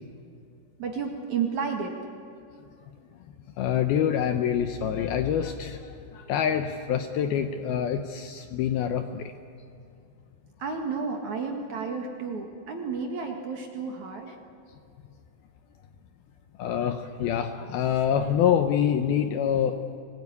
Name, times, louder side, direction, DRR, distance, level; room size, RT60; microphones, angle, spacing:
voice 1, 0.8-2.0 10.6-14.3, right 5 dB, 50° right, 2 dB, 2.7 m, -31 dB
voice 2, 3.6-9.3 16.6-19.8, left 9 dB, 75° left, 7 dB, 2.4 m, -26 dB
24.0 x 20.0 x 9.7 m, 2.5 s
omnidirectional pair, 5.2 m